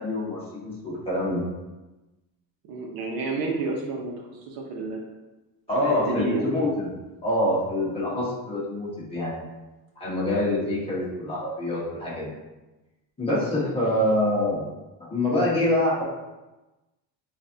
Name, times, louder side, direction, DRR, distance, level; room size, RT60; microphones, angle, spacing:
voice 1, 0.0-1.5 5.7-6.9 7.2-9.4 10.0-12.3 13.2-14.7 15.0-16.0, left 1 dB, 15° left, -8 dB, 1.2 m, -25 dB
voice 2, 2.7-5.0 5.7-6.5 8.1-8.3, right 2 dB, 65° right, -1 dB, 0.9 m, -30 dB
6.3 x 2.6 x 2.7 m, 1.1 s
cardioid pair, 170°, 38 cm